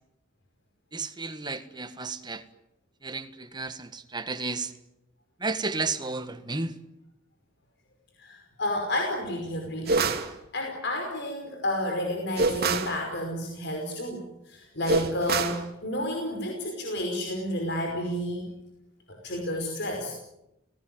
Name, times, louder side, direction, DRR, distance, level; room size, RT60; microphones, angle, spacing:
voice 1, 0.9-2.4 3.0-4.7 5.4-6.8, right 3 dB, 20° right, 9 dB, 1.7 m, -32 dB
voice 2, 8.2-9.9 10.5-18.4 19.1-20.1, left 1 dB, 55° left, 2 dB, 5.2 m, -31 dB
sound 1, 9.9-10.3 12.4-13.0 14.9-15.6, right 3 dB, 50° right, 2.4 m, -25 dB
30.0 x 19.0 x 9.6 m, 0.89 s
head